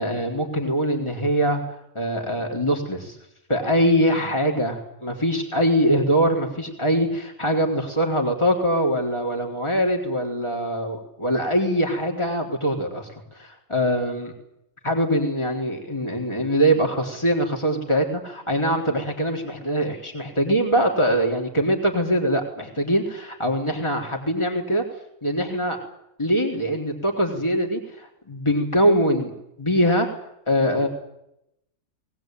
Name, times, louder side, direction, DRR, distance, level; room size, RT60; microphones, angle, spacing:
voice 1, 0.0-1.6 1.9-3.2 3.5-14.3 14.8-24.8 25.2-25.8 26.2-29.3 29.6-30.1 30.5-30.9, equal, 20° left, 1 dB, 4.2 m, -23 dB
21.0 x 20.5 x 9.4 m, 0.80 s
omnidirectional pair, 1.4 m